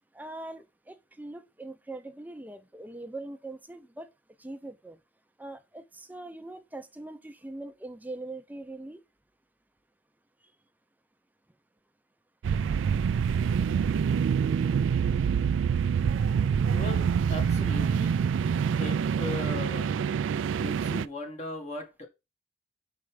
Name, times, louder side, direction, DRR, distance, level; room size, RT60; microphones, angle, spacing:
voice 1, 0.1-4.1 4.4-5.0 5.4-9.0, right 2 dB, 10° right, 0.6 m, -42 dB
sound 1, 12.4-21.1, right 7 dB, 85° right, 0.3 m, -26 dB
voice 2, 16.7-18.2 18.8-20.0 20.6-22.1, left 1 dB, 35° left, 1.6 m, -38 dB
5.4 x 4.5 x 4.9 m
head